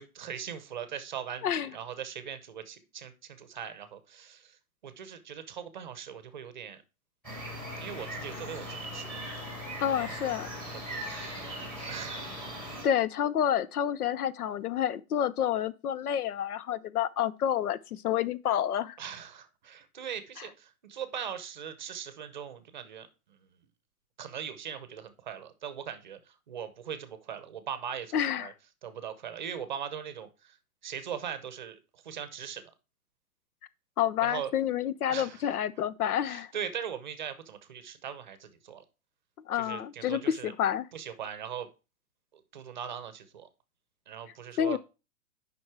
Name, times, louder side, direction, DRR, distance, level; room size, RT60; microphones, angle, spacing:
voice 1, 0.0-4.6 4.8-6.8 7.3-9.3 9.8-10.4 10.9-11.2 11.9-12.4 19.0-23.4 24.2-28.5 28.8-30.6 30.8-31.8 32.0-32.6 34.2-34.5 35.1-35.5 36.2-38.8 39.5-40.5 40.9-41.7 42.5-43.5 44.1-44.8, right 8 dB, 30° right, 0.7 m, -40 dB
voice 2, 1.4-1.7 9.8-10.5 12.8-19.0 20.4-20.5 28.1-28.5 34.0-36.5 39.5-40.9 44.6-44.8, left 10 dB, 85° left, 0.8 m, -29 dB
sound 1, 7.2-12.8, equal, 5° left, 1.4 m, -39 dB
7.5 x 5.4 x 4.7 m
hypercardioid pair, 175°, 44 cm